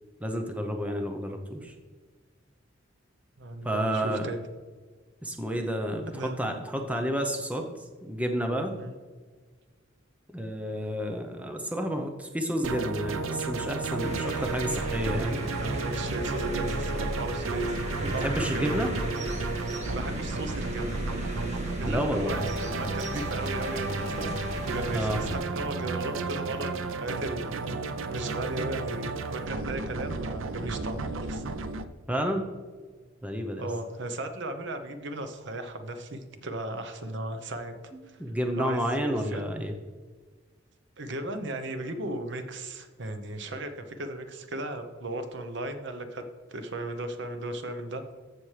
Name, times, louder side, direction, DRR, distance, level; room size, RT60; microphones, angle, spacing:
voice 1, 0.2-1.7 3.6-4.3 5.2-7.7 8.0-8.7 10.3-15.4 18.0-18.9 21.9-22.5 24.9-25.2 32.1-32.5 33.2-33.7 37.9-39.7, equal, 5° right, 4 dB, 0.7 m, -30 dB
voice 2, 3.4-4.4 6.1-6.6 8.8-8.9 15.6-18.6 19.9-20.9 21.8-24.4 24.7-27.8 28.1-31.4 33.6-37.7 38.1-38.2 38.6-39.4 41.0-46.2 46.5-48.0, right 1 dB, 60° right, 7 dB, 0.9 m, -36 dB
sound 1, 12.6-31.8, right 3 dB, 85° right, 0.6 m, -33 dB
sound 2, 14.0-25.4, equal, 35° right, 1.5 m, -36 dB
14.5 x 6.0 x 3.3 m, 1.5 s
head